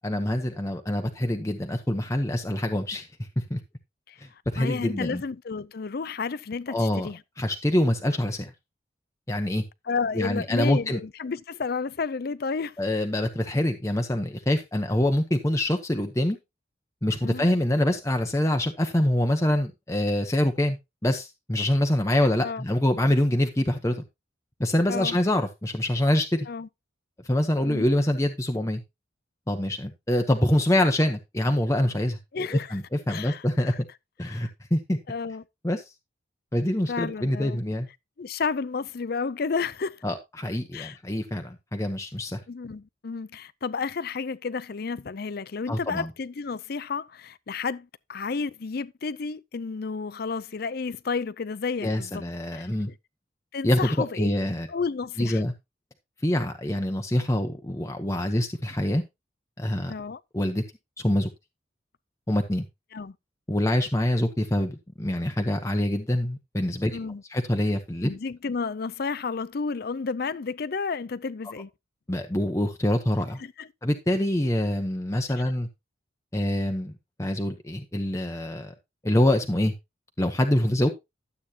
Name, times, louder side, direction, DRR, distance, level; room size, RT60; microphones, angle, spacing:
voice 1, 0.0-3.6 4.5-5.2 6.7-7.1 7.4-8.5 9.3-9.6 10.1-11.0 12.8-16.4 17.0-24.0 24.6-26.5 27.2-28.8 29.5-33.7 34.2-35.0 35.6-35.8 36.5-37.9 40.0-42.4 45.7-46.1 51.8-52.9 53.6-54.7 55.2-55.5 56.2-59.0 59.6-59.9 60.3-60.6 61.0-61.3 62.3-62.6 63.5-67.0 67.3-68.1 72.1-73.4 73.8-75.7 76.3-76.9 77.2-78.7 79.0-79.7 80.2-80.9, left 1 dB, 15° left, 0.9 m, -25 dB
voice 2, 4.6-7.2 9.9-12.8 17.2-17.6 22.4-22.6 24.9-25.2 26.5-26.7 27.7-27.9 32.3-32.8 33.1-33.8 34.2-34.5 35.1-35.4 36.9-37.6 38.2-40.0 40.7-41.0 42.5-52.2 52.5-52.7 53.5-54.3 54.7-55.4 59.9-60.2 62.9-63.2 66.9-67.2 68.0-71.7 73.4-73.7 75.4-75.5, left 5 dB, 55° left, 0.5 m, -31 dB
12.0 x 8.2 x 2.8 m
head